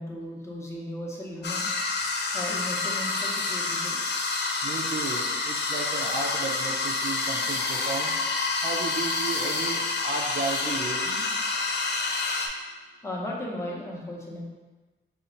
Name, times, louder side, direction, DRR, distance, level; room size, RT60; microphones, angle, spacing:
voice 1, 0.0-1.7 2.3-4.0 13.0-14.4, left 1 dB, 15° left, -3 dB, 0.7 m, -36 dB
sound 1, 1.4-12.5, left 3 dB, 60° left, 0.5 m, -28 dB
voice 2, 4.6-8.1 8.6-11.2, right 3 dB, 50° right, 0 dB, 0.5 m, -34 dB
4.0 x 2.4 x 4.2 m, 1.2 s
wide cardioid pair, 145°, 20 cm